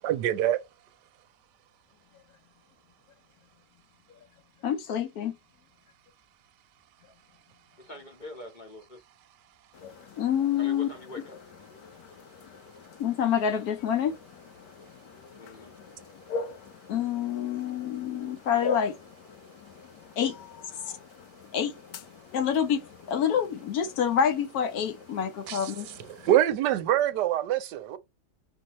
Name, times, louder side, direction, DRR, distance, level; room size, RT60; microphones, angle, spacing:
voice 1, 0.0-0.6 25.5-25.7 26.1-28.0, right 12 dB, 90° right, 1.2 m, -25 dB
voice 2, 4.6-5.4 10.2-10.9 13.0-14.1 16.9-18.9 20.2-20.4 21.5-21.7 22.3-25.9, left 8 dB, 70° left, 1.1 m, -27 dB
voice 3, 7.8-9.0 10.6-11.4 15.4-15.7 22.2-22.4, left 1 dB, 35° left, 0.9 m, -44 dB
sound 1, 9.7-26.4, left 4 dB, 90° left, 1.3 m, -43 dB
5.2 x 2.7 x 3.0 m
omnidirectional pair, 1.8 m